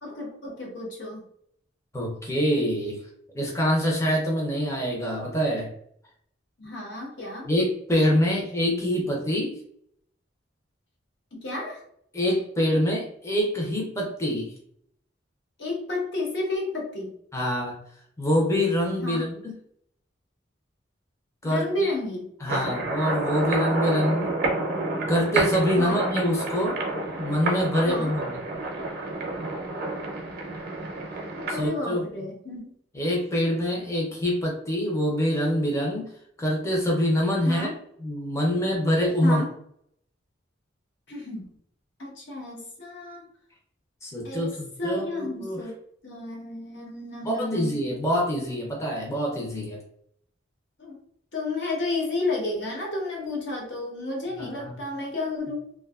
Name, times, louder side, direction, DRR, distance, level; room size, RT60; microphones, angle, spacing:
voice 1, 0.0-1.2 6.6-7.5 11.3-11.8 15.6-17.1 19.0-19.3 21.4-22.3 25.8-26.0 27.9-28.1 31.1-32.7 37.4-37.7 39.2-39.5 41.1-41.5 42.0-43.2 44.2-44.5 44.8-45.8 46.0-47.8 50.8-51.0 51.3-55.7, left 2 dB, 65° left, -1 dB, 0.8 m, -31 dB
voice 2, 1.9-3.0 3.3-5.7 7.5-9.6 12.1-14.5 17.3-17.8 18.2-19.5 21.4-21.9 22.4-24.4 25.1-26.8 27.2-28.4 31.5-32.0 32.9-36.1 36.4-37.7 38.0-39.4 44.0-45.6 47.2-49.8 54.4-54.8, equal, 15° left, -2 dB, 0.5 m, -25 dB
sound 1, 22.5-31.7, right 2 dB, 55° right, 0.5 m, -29 dB
2.6 x 2.2 x 2.3 m, 0.68 s
head